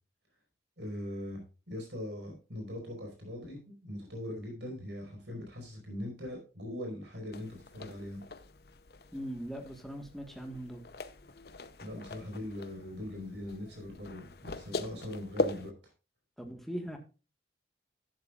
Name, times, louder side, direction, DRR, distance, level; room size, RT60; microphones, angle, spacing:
voice 1, 0.8-8.2 11.8-15.7, left 1 dB, 75° right, 5.0 m, -41 dB
sound 1, 7.3-15.7, left 2 dB, 60° left, 0.8 m, -40 dB
voice 2, 9.1-10.8 16.4-17.0, equal, ahead, 1.6 m, -40 dB
12.0 x 10.5 x 2.5 m
head